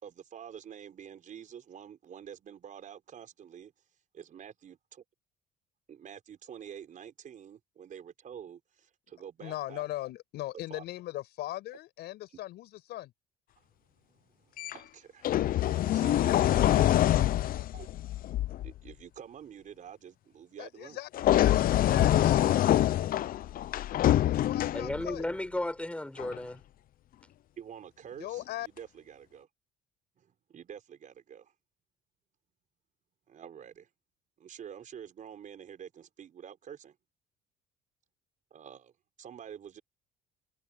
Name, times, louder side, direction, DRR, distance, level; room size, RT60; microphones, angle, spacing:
voice 1, 0.0-3.7 4.1-5.0 5.9-9.9 10.7-10.8 13.7-13.8 14.3-15.4 15.8-17.0 17.7-17.9 18.6-21.0 21.9-22.0 27.6-29.5 30.2-31.5 33.3-33.9 34.4-37.0 38.5-38.9 39.2-39.8, right 8 dB, 50° right, 5.0 m, -48 dB
voice 2, 9.4-13.1 16.4-17.3 20.6-22.9 24.3-25.3 28.2-28.7, left 15 dB, 80° left, 6.9 m, -39 dB
sound 1, 14.6-14.7 15.2-18.7 21.1-25.2 26.2-26.4, left 13 dB, 60° left, 0.7 m, -25 dB
voice 3, 24.7-26.6, left 1 dB, 5° left, 7.2 m, -34 dB
cardioid pair, 110°, 17 cm